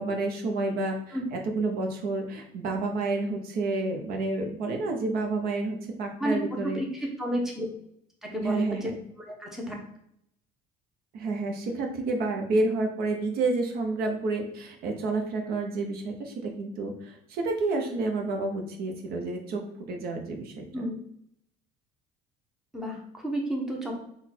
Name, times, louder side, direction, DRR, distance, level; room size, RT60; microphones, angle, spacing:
voice 1, 0.0-6.8 8.4-8.9 11.1-19.6 19.9-20.9, right 3 dB, 60° right, 3 dB, 0.8 m, -29 dB
voice 2, 6.2-6.9 7.2-7.7 8.2-8.9 9.3-9.8 20.7-21.0 22.7-23.9, equal, ahead, 0 dB, 0.9 m, -31 dB
4.1 x 2.4 x 4.3 m, 0.71 s
cardioid pair, 125°, 17 cm